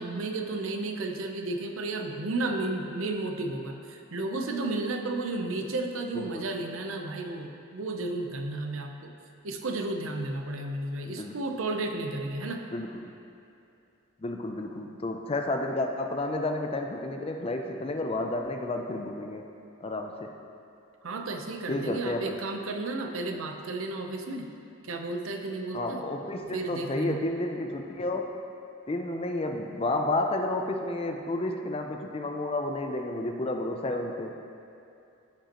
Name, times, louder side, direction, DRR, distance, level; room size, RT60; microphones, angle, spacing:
voice 1, 0.0-9.1 9.4-12.6 21.0-24.5 24.8-26.0 26.5-27.2, right 2 dB, 75° right, 4 dB, 0.7 m, -33 dB
voice 2, 6.1-6.5 11.1-11.4 12.7-13.1 14.2-19.5 19.8-20.3 21.7-22.4 25.7-28.3 28.9-34.4, left 2 dB, 25° left, 4 dB, 0.4 m, -31 dB
14.5 x 5.2 x 3.0 m, 2.6 s
head